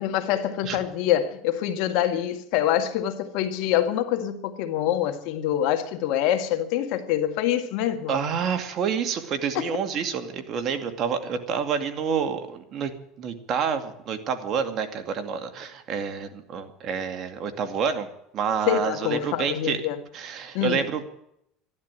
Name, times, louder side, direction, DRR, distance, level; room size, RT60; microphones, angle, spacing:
voice 1, 0.0-8.2 9.5-9.7 18.7-20.0 20.5-20.8, left 11 dB, 70° left, 1.7 m, -25 dB
voice 2, 8.1-12.9 13.2-18.1 18.3-19.8 20.1-21.0, right 6 dB, 50° right, 2.3 m, -28 dB
13.0 x 12.0 x 9.0 m
supercardioid pair, 100°, 0 cm